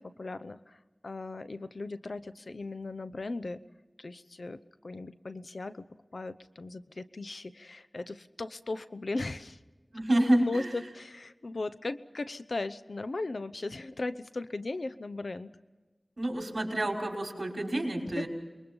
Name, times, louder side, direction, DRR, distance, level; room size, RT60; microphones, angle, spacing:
voice 1, 0.0-3.6 4.0-5.8 6.1-9.6 10.1-15.6 18.2-18.3, left 2 dB, 80° left, 13 dB, 0.8 m, -37 dB
voice 2, 9.9-10.7 16.2-18.3, right 1 dB, 55° right, 0 dB, 5.7 m, -29 dB
28.0 x 22.0 x 5.6 m, 1.3 s
wide cardioid pair, 55°, 0 cm